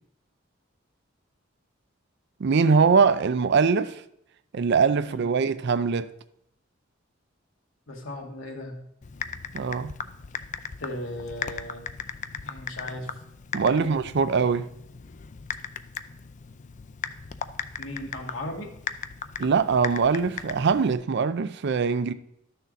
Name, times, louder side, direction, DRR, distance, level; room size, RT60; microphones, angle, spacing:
voice 1, 2.4-4.0 4.5-6.1 9.5-9.9 13.5-14.7 19.4-22.1, right 5 dB, 60° right, 0.5 m, -22 dB
voice 2, 7.9-8.8 10.8-11.8 12.4-13.1 13.6-13.9 17.8-18.7, left 1 dB, 75° left, 1.8 m, -36 dB
Typing, 9.0-20.9, left 7 dB, 40° left, 0.5 m, -38 dB
12.5 x 6.6 x 4.0 m
head